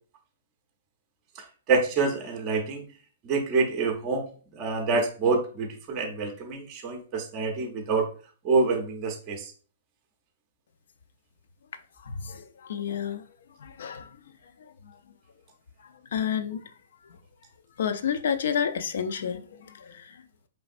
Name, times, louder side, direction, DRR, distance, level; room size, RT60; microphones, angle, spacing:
voice 1, 1.7-2.8 3.2-4.3 4.6-8.1 8.4-9.5, right 4 dB, 20° right, 0.5 m, -26 dB
voice 2, 12.0-13.2 13.6-14.2 14.6-15.0 15.8-16.7 17.8-20.2, left 7 dB, 60° left, 0.4 m, -31 dB
5.0 x 3.1 x 2.5 m
hypercardioid pair, 175°, 0 cm